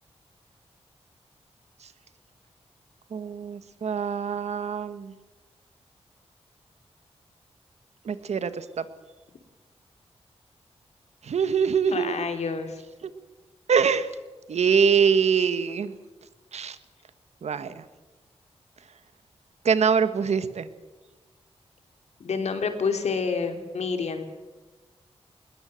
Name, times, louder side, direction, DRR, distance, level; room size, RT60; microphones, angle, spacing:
voice 1, 3.1-5.1 8.0-8.8 11.2-12.3 13.0-13.1 13.7-14.1 14.5-15.9 16.5-16.8 17.4-17.8 19.6-20.7, right 6 dB, 80° right, 12 dB, 1.4 m, -24 dB
voice 2, 11.9-12.8 22.2-24.2, left 5 dB, 85° left, 7 dB, 3.0 m, -28 dB
21.0 x 19.5 x 7.7 m, 1.2 s
wide cardioid pair, 95°, 11 cm